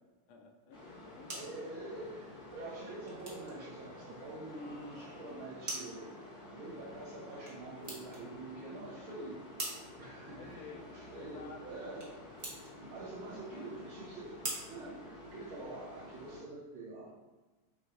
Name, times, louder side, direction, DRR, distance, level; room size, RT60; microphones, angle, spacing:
voice 1, 0.3-1.6 2.0-2.1 10.4-11.9 13.2-13.8, left 5 dB, 80° left, 2 dB, 0.9 m, -53 dB
sound 1, 0.7-16.4, left 1 dB, 50° left, 0.5 m, -51 dB
sound 2, 1.1-15.8, right 2 dB, 40° right, 0.6 m, -48 dB
voice 2, 1.3-9.4 10.0-12.2 12.7-17.1, right 2 dB, 80° right, -6 dB, 1.7 m, -46 dB
sound 3, 4.5-5.8, left 2 dB, 65° left, 1.2 m, -57 dB
5.0 x 3.4 x 2.5 m, 1.2 s
omnidirectional pair, 2.3 m